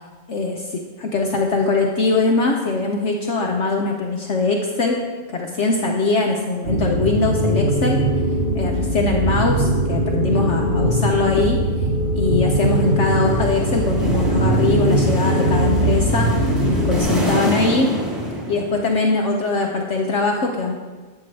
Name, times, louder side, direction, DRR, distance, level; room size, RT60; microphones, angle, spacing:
voice 1, 0.3-5.0 5.3-8.0 8.6-11.6 12.1-16.3 16.6-17.9 18.5-20.7, left 3 dB, 55° left, 1 dB, 1.0 m, -21 dB
sound 1, 6.6-17.0, right 1 dB, 40° right, 1.0 m, -20 dB
sound 2, 12.5-19.0, left 1 dB, ahead, 2.3 m, -26 dB
12.0 x 7.7 x 3.3 m, 1.3 s
omnidirectional pair, 1.6 m